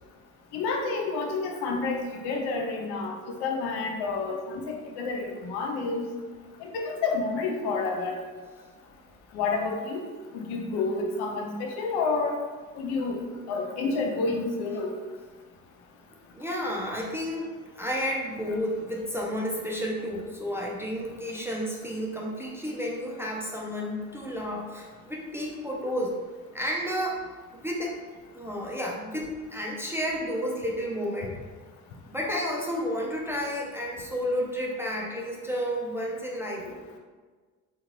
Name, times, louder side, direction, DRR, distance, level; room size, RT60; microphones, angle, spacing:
voice 1, 0.5-6.1 6.6-8.2 9.3-10.0 10.3-12.4 12.8-13.2 13.5-14.9 36.7-36.8, left 4 dB, 60° left, 2 dB, 0.7 m, -29 dB
voice 2, 16.3-26.2 26.5-27.2 27.5-27.9 28.3-31.3 32.0-36.6, equal, 5° right, -3 dB, 0.5 m, -31 dB
3.5 x 2.7 x 2.9 m, 1.4 s
figure-of-eight pair, 45°, 45 cm